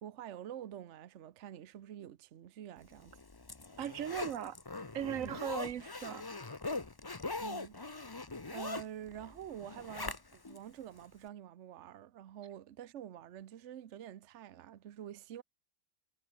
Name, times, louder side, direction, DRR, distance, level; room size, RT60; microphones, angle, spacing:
voice 1, 0.0-3.1 5.1-5.4 7.4-7.8 8.5-15.4, right 10 dB, 65° right, 1.1 m, -47 dB
Zipper (clothing), 3.0-10.6 11.0-11.1, left 3 dB, 20° left, 0.9 m, -42 dB
voice 2, 3.8-4.6 4.9-6.2, right 9 dB, 80° right, 1.3 m, -38 dB
omnidirectional pair, 1.4 m